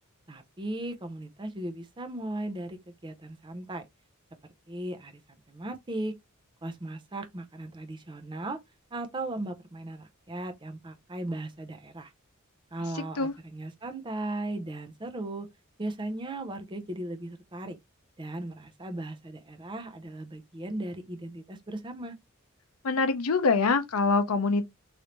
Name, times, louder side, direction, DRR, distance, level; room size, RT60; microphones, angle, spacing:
voice 1, 0.3-3.9 4.7-5.2 5.5-6.1 6.6-8.6 8.9-12.1 12.7-15.5 15.8-17.8 18.2-22.1, right 1 dB, 20° right, 0.6 m, -37 dB
voice 2, 12.9-13.3 22.8-24.7, left 4 dB, 85° left, 0.6 m, -25 dB
3.2 x 2.6 x 2.9 m
head